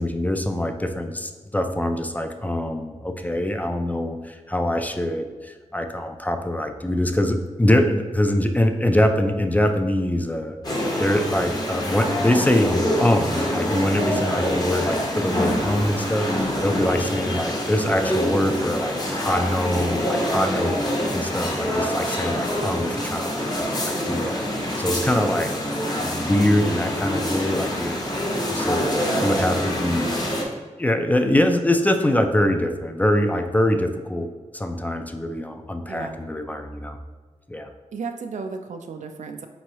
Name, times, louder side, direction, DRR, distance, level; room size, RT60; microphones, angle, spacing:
voice 1, 0.0-19.0 19.2-20.8 21.1-25.5 25.9-30.1 30.8-37.0 37.5-37.7, left 1 dB, 15° left, 6 dB, 0.3 m, -24 dB
sound 1, 10.6-30.4, equal, 30° left, 0.8 m, -25 dB
voice 2, 35.9-36.2 37.9-39.5, right 4 dB, 80° right, 6 dB, 0.4 m, -34 dB
4.4 x 3.1 x 2.9 m, 1.4 s
wide cardioid pair, 70°, 12 cm